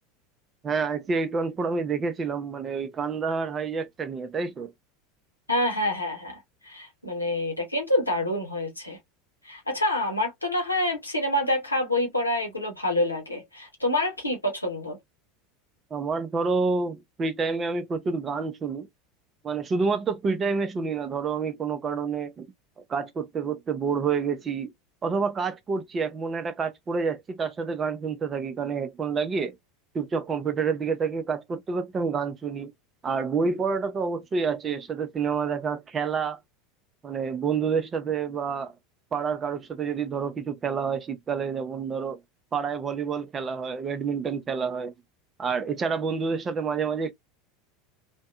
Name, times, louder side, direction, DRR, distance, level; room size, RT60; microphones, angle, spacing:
voice 1, 0.6-4.7 15.9-18.9 19.4-22.4 22.9-24.7 25.0-29.5 29.9-32.7 33.0-36.4 37.0-38.7 39.1-42.2 42.5-44.9 45.4-47.1, right 5 dB, 25° right, 0.5 m, -28 dB
voice 2, 5.5-9.0 9.4-15.0, left 1 dB, 90° left, 0.9 m, -27 dB
2.6 x 2.2 x 2.3 m
figure-of-eight pair, 75°, 0 cm